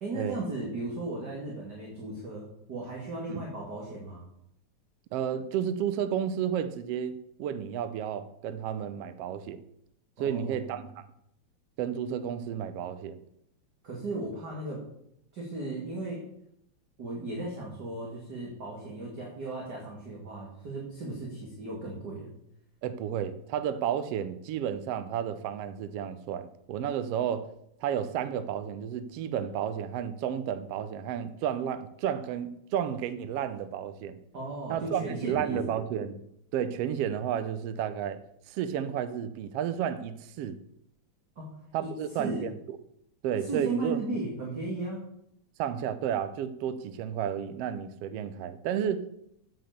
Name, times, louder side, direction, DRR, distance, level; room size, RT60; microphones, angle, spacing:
voice 1, 0.0-4.3 10.2-10.7 13.8-14.8 15.3-16.2 17.0-22.3 34.3-35.8 41.4-41.5 41.8-41.9 42.2-42.5 43.4-45.0, right 2 dB, 35° right, -3 dB, 2.6 m, -36 dB
voice 2, 5.1-9.6 10.2-11.0 11.8-13.2 22.8-27.5 27.8-34.2 34.7-36.2 36.5-38.2 38.5-40.6 41.7-42.8 43.2-44.0 45.6-49.0, right 9 dB, 70° right, 11 dB, 1.6 m, -32 dB
8.6 x 7.8 x 6.8 m, 0.74 s
omnidirectional pair, 3.4 m